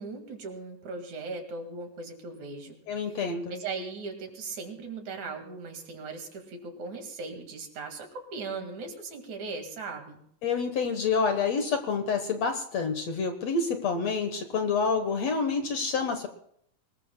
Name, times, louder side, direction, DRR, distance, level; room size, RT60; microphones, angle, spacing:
voice 1, 0.0-2.8 3.1-10.2, right 4 dB, 60° right, 4 dB, 3.3 m, -38 dB
voice 2, 2.9-3.5 10.4-16.3, left 5 dB, 60° left, 6 dB, 2.0 m, -28 dB
24.0 x 20.5 x 2.3 m, 0.67 s
omnidirectional pair, 4.0 m